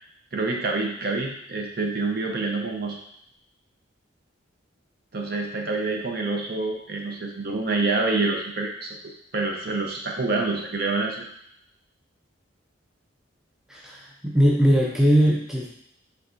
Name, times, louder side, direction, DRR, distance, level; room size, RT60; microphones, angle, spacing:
voice 1, 0.3-3.0 5.1-8.9 9.3-11.2, right 3 dB, 50° right, 1 dB, 0.6 m, -27 dB
voice 2, 13.7-15.7, equal, 5° right, -3 dB, 0.5 m, -20 dB
4.6 x 3.4 x 2.6 m, 0.70 s
head